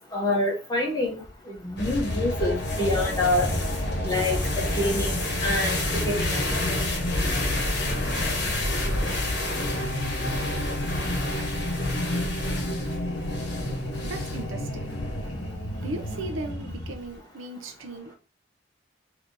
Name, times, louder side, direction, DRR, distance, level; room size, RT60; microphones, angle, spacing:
voice 1, 0.1-1.2 1.6-3.5 4.0-5.1 5.4-5.8 6.1-6.4, left 1 dB, 20° left, 0.6 m, -26 dB
sound 1, 1.8-17.2, left 1 dB, 55° left, 1.0 m, -30 dB
sound 2, 1.9-16.9, left 1 dB, 80° left, 0.8 m, -32 dB
voice 2, 14.0-14.9 15.7-18.1, right 2 dB, 80° right, 0.5 m, -37 dB
3.7 x 2.7 x 2.6 m
head